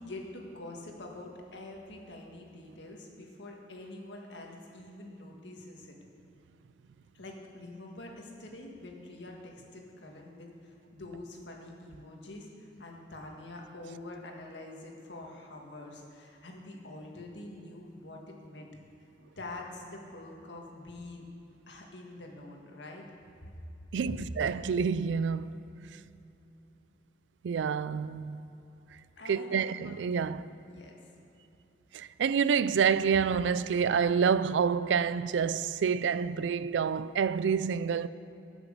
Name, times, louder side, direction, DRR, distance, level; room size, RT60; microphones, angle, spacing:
voice 1, 0.0-5.9 7.1-18.7 19.4-21.3 21.7-23.1 29.2-29.9 30.2-30.3 30.7-30.9, left 2 dB, 80° left, 1.7 m, -46 dB
voice 2, 23.9-25.6 27.4-28.4 29.3-30.5 31.9-38.1, right 6 dB, 90° right, 0.4 m, -28 dB
15.5 x 6.3 x 6.7 m
head